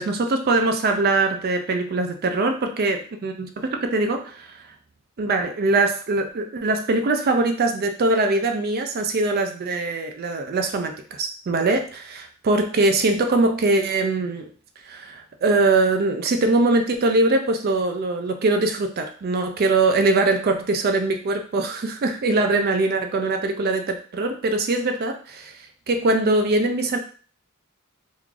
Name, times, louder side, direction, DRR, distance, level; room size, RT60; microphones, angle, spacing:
voice 1, 0.0-4.5 5.2-14.5 14.8-25.5 25.9-27.0, right 2 dB, 45° right, 5 dB, 0.4 m, -22 dB
3.1 x 2.4 x 3.7 m, 0.42 s
head